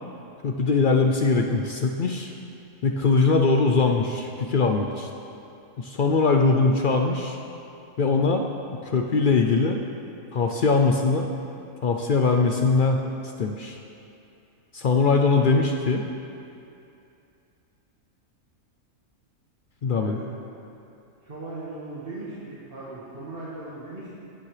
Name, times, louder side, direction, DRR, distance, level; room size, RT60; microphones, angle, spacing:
voice 1, 0.4-2.3 2.8-5.1 5.8-7.4 8.0-8.4 8.8-9.8 10.3-11.3 11.8-13.0 13.4-13.8 14.7-16.0 19.8-20.2, left 4 dB, 65° left, 3 dB, 0.5 m, -21 dB
voice 2, 19.9-20.6 21.2-24.1, right 2 dB, 40° right, -8 dB, 1.7 m, -38 dB
19.5 x 7.3 x 3.3 m, 2.7 s
omnidirectional pair, 1.5 m